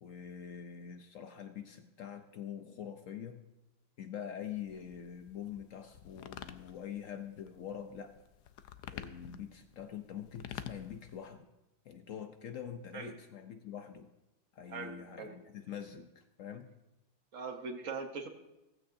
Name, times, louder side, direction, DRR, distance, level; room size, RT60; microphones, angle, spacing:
voice 1, 0.0-3.4 4.0-8.1 8.9-11.5 11.9-14.1 14.5-16.7, left 9 dB, 65° left, 7 dB, 0.9 m, -45 dB
sound 1, 4.4-11.3, left 10 dB, 85° left, 1.2 m, -49 dB
voice 2, 14.7-15.4 17.3-18.3, right 4 dB, 55° right, 5 dB, 1.2 m, -41 dB
15.5 x 15.0 x 2.6 m, 0.97 s
omnidirectional pair, 1.7 m